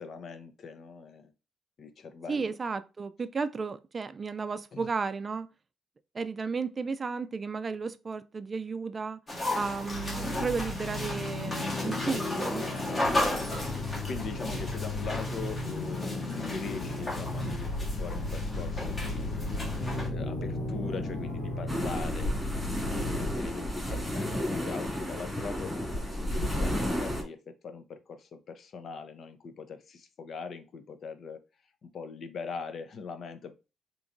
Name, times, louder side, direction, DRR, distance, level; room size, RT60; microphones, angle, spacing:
voice 1, 0.0-1.3 1.8-2.6 4.7-4.9 13.8-19.3 20.1-31.4 31.8-33.5, left 5 dB, 55° left, 0.7 m, -41 dB
voice 2, 2.3-5.5 6.1-9.2 9.5-12.6, right 4 dB, 35° right, 0.4 m, -33 dB
sound 1, 9.3-20.1, left 1 dB, 30° left, 1.5 m, -35 dB
sound 2, 9.6-23.3, left 2 dB, 85° left, 1.3 m, -35 dB
sound 3, 21.7-27.2, left 1 dB, ahead, 2.2 m, -32 dB
4.7 x 3.0 x 2.6 m
cardioid pair, 90°, 0 cm